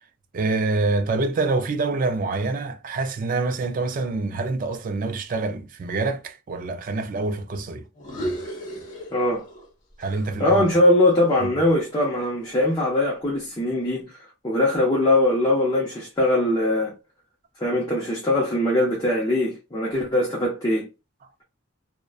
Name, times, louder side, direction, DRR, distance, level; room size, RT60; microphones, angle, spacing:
voice 1, 0.3-7.8 10.0-10.7 11.4-11.5, right 3 dB, 40° right, 0.3 m, -26 dB
sound 1, 7.9-9.7 10.0-12.2, right 1 dB, 40° left, 0.8 m, -35 dB
voice 2, 9.1-9.4 10.4-14.1 14.4-16.9 17.6-20.9, left 1 dB, 20° left, 0.5 m, -21 dB
2.5 x 2.1 x 2.3 m
head